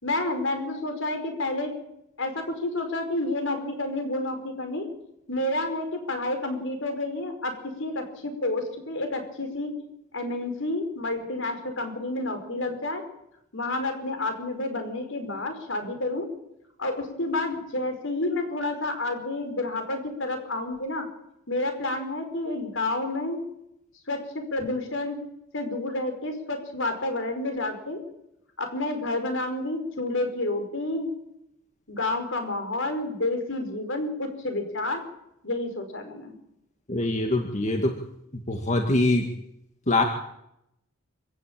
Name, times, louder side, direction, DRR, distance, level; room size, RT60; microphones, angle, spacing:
voice 1, 0.0-1.7 2.2-4.9 5.3-9.8 10.1-13.0 13.5-16.3 16.8-21.1 21.5-23.4 24.1-25.2 25.5-28.0 28.6-31.1 31.9-35.0 35.4-36.3, left 2 dB, 65° left, 7 dB, 5.2 m, -29 dB
voice 2, 36.9-37.9 38.5-39.3 39.9-40.0, left 2 dB, 35° left, 4 dB, 1.9 m, -23 dB
26.0 x 16.5 x 8.9 m, 0.82 s
head